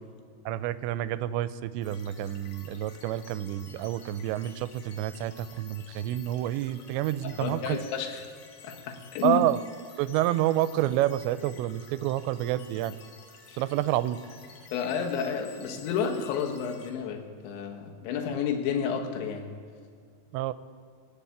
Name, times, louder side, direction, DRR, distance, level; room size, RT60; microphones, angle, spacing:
voice 1, 0.5-7.8 9.2-9.6 10.0-13.0 13.6-14.2 20.3-20.5, right 14 dB, 85° right, 15 dB, 2.8 m, -28 dB
sound 1, 1.8-16.9, left 5 dB, 65° left, 2.9 m, -52 dB
voice 2, 7.2-8.2 8.6-9.4 13.5-13.6 14.7-19.5, left 7 dB, 90° left, 3 dB, 3.7 m, -31 dB
20.0 x 7.0 x 8.5 m, 2.1 s
omnidirectional pair, 5.2 m